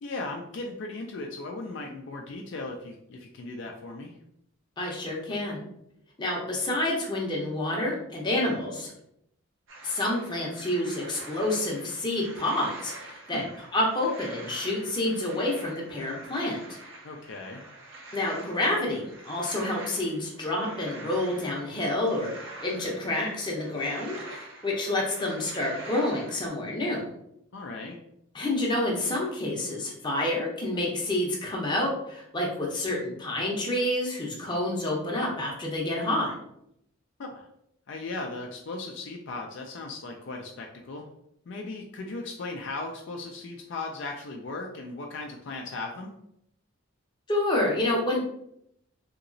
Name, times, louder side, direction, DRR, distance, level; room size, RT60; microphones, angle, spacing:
voice 1, 0.0-4.2 13.3-13.4 17.0-17.6 27.5-28.0 37.2-37.5 37.9-41.1 41.5-46.1, left 3 dB, 55° left, 1 dB, 0.4 m, -37 dB
voice 2, 4.8-5.6 6.2-8.9 9.8-16.6 18.1-22.3 22.6-27.1 28.3-36.3 47.3-48.2, left 1 dB, 20° left, -2 dB, 0.6 m, -28 dB
sound 1, 9.7-26.5, right 2 dB, 65° right, 0.7 m, -46 dB
2.9 x 2.8 x 2.6 m, 0.75 s
head